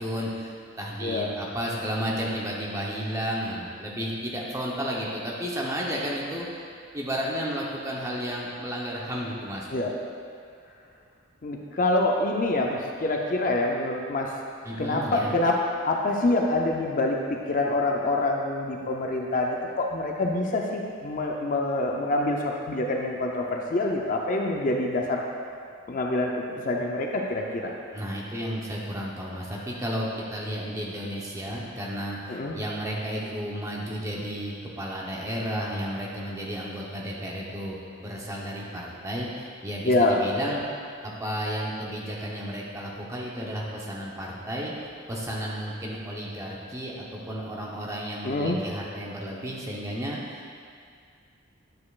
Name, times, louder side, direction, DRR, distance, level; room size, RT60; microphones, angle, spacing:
voice 1, 0.0-6.7 6.9-9.7 14.6-15.4 27.9-40.6 41.0-50.6, equal, 15° right, -4 dB, 0.9 m, -33 dB
voice 2, 11.4-14.3 14.8-15.6 15.8-25.2 25.9-27.7 32.3-32.6 39.8-40.6 48.2-48.6, left 2 dB, 40° left, 0 dB, 0.5 m, -26 dB
9.4 x 6.6 x 2.4 m, 2.3 s
head